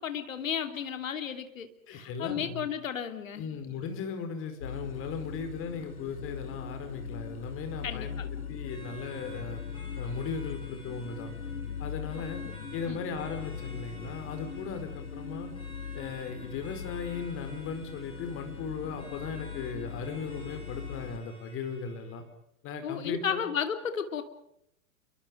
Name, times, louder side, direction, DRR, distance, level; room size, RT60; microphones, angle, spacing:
voice 1, 0.0-3.5 7.8-8.3 12.4-13.0 22.8-24.2, left 7 dB, 65° left, 8 dB, 3.0 m, -34 dB
voice 2, 1.9-2.7 3.4-8.2 8.5-9.6 10.0-11.3 11.8-12.4 12.7-15.5 15.9-22.2 22.6-23.4, left 5 dB, 30° left, 7 dB, 4.9 m, -37 dB
sound 1, 4.6-21.2, left 6 dB, 80° left, 1.3 m, -40 dB
sound 2, 8.7-22.2, equal, 10° left, 7.6 m, -52 dB
28.5 x 24.5 x 5.2 m, 0.75 s
figure-of-eight pair, 100°, 42 cm